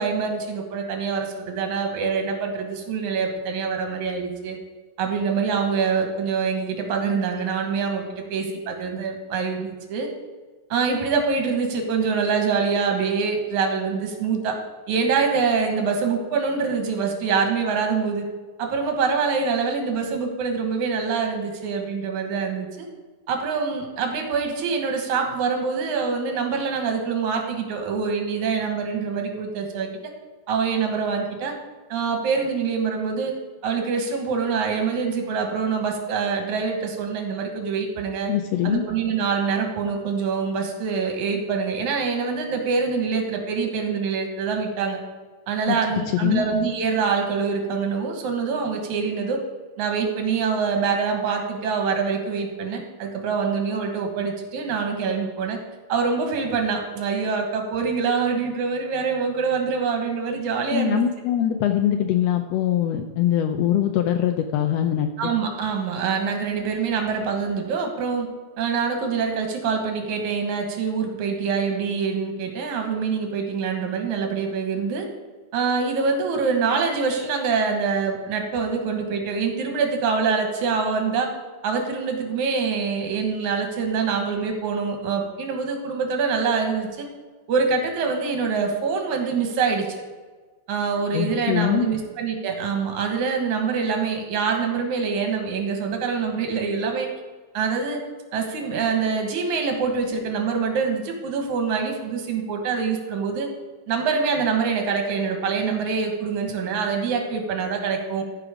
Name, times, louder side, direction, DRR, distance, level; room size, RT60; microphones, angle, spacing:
voice 1, 0.0-4.6 5.0-10.1 10.7-14.6 14.9-18.3 18.6-22.9 23.3-29.9 30.5-31.5 31.9-33.3 33.6-38.3 38.6-45.0 45.5-49.4 49.8-55.6 55.9-61.0 65.2-68.3 68.6-75.1 75.5-81.3 81.6-87.1 87.5-89.9 90.7-97.1 97.5-98.0 98.3-103.5 103.9-108.2, right 5 dB, 80° right, 4 dB, 2.7 m, -25 dB
voice 2, 38.3-38.8 45.7-46.4 60.7-65.3 91.1-91.9, left 10 dB, 80° left, 6 dB, 1.5 m, -23 dB
14.0 x 5.1 x 4.9 m, 1.4 s
omnidirectional pair, 3.3 m